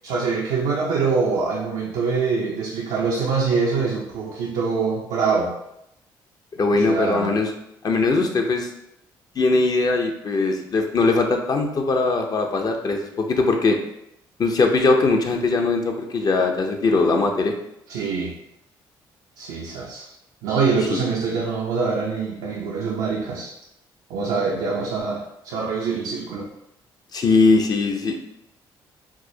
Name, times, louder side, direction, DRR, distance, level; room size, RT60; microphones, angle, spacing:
voice 1, 0.0-5.5 6.7-7.4 17.9-18.3 19.4-20.1 20.4-23.5 24.1-26.5, right 4 dB, 85° right, -4 dB, 0.6 m, -24 dB
voice 2, 6.6-7.5 7.8-8.7 9.4-13.8 14.4-17.6 20.9-21.0 27.1-28.2, left 3 dB, 45° left, 3 dB, 0.6 m, -20 dB
4.6 x 2.0 x 2.7 m, 0.82 s
supercardioid pair, 70°, 10 cm